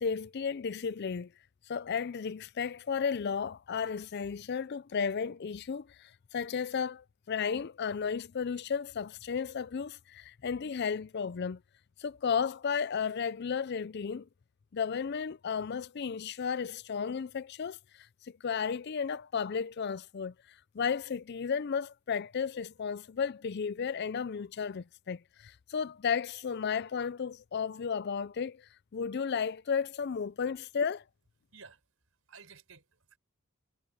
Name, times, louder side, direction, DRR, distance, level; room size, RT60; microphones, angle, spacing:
voice 1, 0.0-1.3 1.7-11.6 12.0-14.3 14.7-17.8 18.2-20.3 20.7-31.0, left 6 dB, 50° left, 0.4 m, -33 dB
voice 2, 31.5-33.2, right 5 dB, 70° right, 5.1 m, -55 dB
head